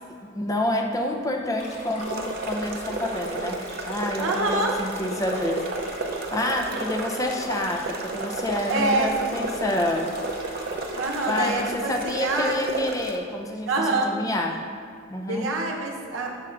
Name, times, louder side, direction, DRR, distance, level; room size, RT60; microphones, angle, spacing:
voice 1, 0.4-5.7 6.3-10.2 11.3-14.6 15.1-15.5, left 1 dB, 15° left, 2 dB, 0.4 m, -28 dB
Stream, 1.6-11.6, left 1 dB, 30° left, 0.8 m, -41 dB
sound 1, 2.0-13.2, right 3 dB, 45° right, 0.4 m, -33 dB
voice 2, 4.2-4.8 8.7-9.1 10.9-12.6 13.7-14.1 15.3-16.3, right 2 dB, 75° right, 0 dB, 0.8 m, -26 dB
6.3 x 4.4 x 3.8 m, 2.4 s
head